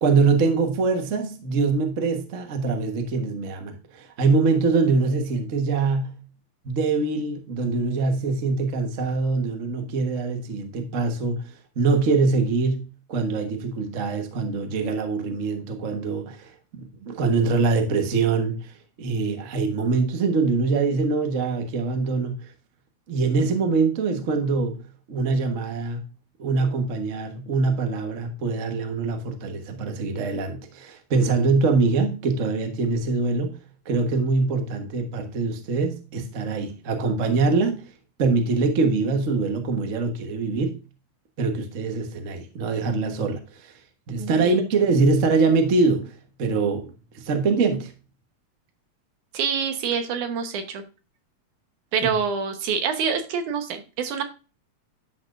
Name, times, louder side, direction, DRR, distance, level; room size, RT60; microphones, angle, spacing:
voice 1, 0.0-6.2 6.6-11.4 11.8-18.6 19.0-22.4 23.1-24.8 25.1-26.0 26.4-37.9 38.2-40.8 41.4-43.7 44.1-47.9, right 4 dB, 60° right, 0.8 m, -23 dB
voice 2, 44.2-44.6 49.3-50.8 51.9-54.2, right 6 dB, 80° right, 2.6 m, -26 dB
11.5 x 6.2 x 2.5 m
omnidirectional pair, 3.5 m